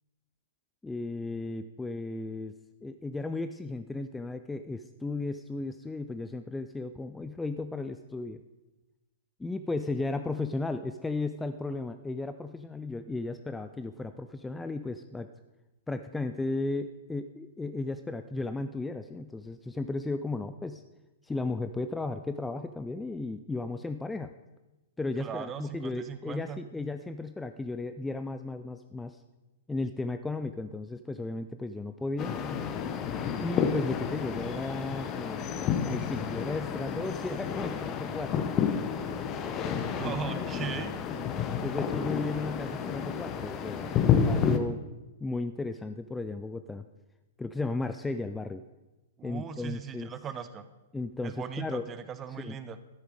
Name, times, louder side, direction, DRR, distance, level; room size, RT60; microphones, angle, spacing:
voice 1, 0.8-2.5 2.8-8.4 9.4-15.3 15.9-20.8 21.2-24.3 25.0-29.2 29.7-32.4 33.4-35.5 35.8-38.8 40.0-40.5 41.5-44.8 45.2-46.8 47.4-48.6 49.2-50.1 50.9-51.9 52.4-52.6, left 3 dB, 10° left, 9 dB, 0.4 m, -35 dB
voice 2, 25.2-26.6 39.9-40.9 49.2-50.6 51.2-52.8, right 8 dB, 20° right, 12 dB, 0.8 m, -38 dB
sound 1, 32.2-44.6, left 7 dB, 25° left, 0.9 m, -30 dB
13.0 x 9.7 x 5.0 m, 1.1 s
figure-of-eight pair, 105°, 0 cm